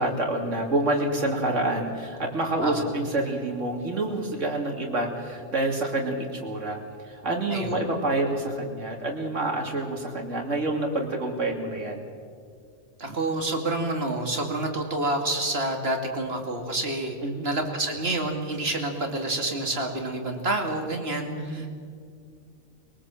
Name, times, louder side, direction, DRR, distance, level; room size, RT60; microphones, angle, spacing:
voice 1, 0.0-6.8 7.1-12.1 17.2-17.6 21.3-21.7, right 2 dB, 70° right, 1 dB, 3.2 m, -28 dB
voice 2, 7.5-7.8 13.0-17.2 17.4-21.7, right 2 dB, 50° right, 3 dB, 2.5 m, -28 dB
22.0 x 19.0 x 7.6 m, 2.2 s
omnidirectional pair, 1.3 m